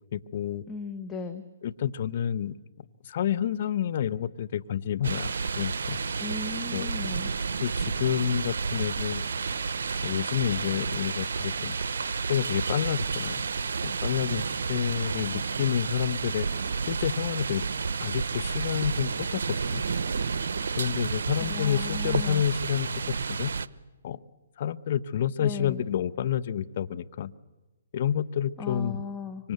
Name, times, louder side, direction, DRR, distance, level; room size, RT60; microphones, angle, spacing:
voice 1, 0.1-0.6 1.6-2.6 3.0-5.3 5.6-6.0 6.7-6.9 7.6-9.2 10.0-11.8 12.3-13.4 13.8-16.5 16.9-17.6 18.0-19.8 20.8-22.9 23.3-23.5 24.0-24.2 24.6-27.3 27.9-29.0 29.4-29.5, left 9 dB, 50° left, 14 dB, 1.0 m, -29 dB
voice 2, 0.7-1.4 6.2-7.3 21.4-22.4 25.4-25.9 28.6-29.4, left 5 dB, 15° left, 6 dB, 1.4 m, -37 dB
sound 1, 5.0-23.7, right 5 dB, 70° right, 0.9 m, -31 dB
25.0 x 25.0 x 8.1 m, 1.2 s
hypercardioid pair, 140°, 0 cm